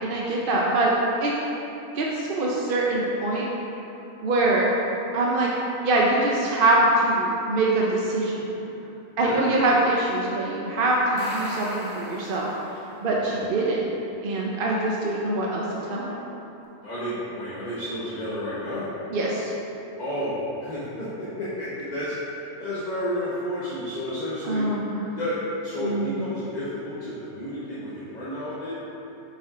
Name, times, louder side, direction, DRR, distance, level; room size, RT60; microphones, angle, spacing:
voice 1, 0.0-0.9 1.2-1.4 1.9-3.5 4.2-4.7 5.1-5.5 5.8-8.6 9.2-12.5 13.0-13.8 14.2-16.1 19.1-19.5 24.4-25.0 25.8-26.2, right 2 dB, 50° right, -3 dB, 0.7 m, -23 dB
sound 1, 11.0-12.9, left 1 dB, 55° left, 1.5 m, -37 dB
voice 2, 13.0-13.4 16.8-18.9 20.0-24.7 25.1-28.7, equal, 30° left, -11 dB, 1.2 m, -31 dB
6.8 x 6.6 x 3.8 m, 2.9 s
omnidirectional pair, 1.6 m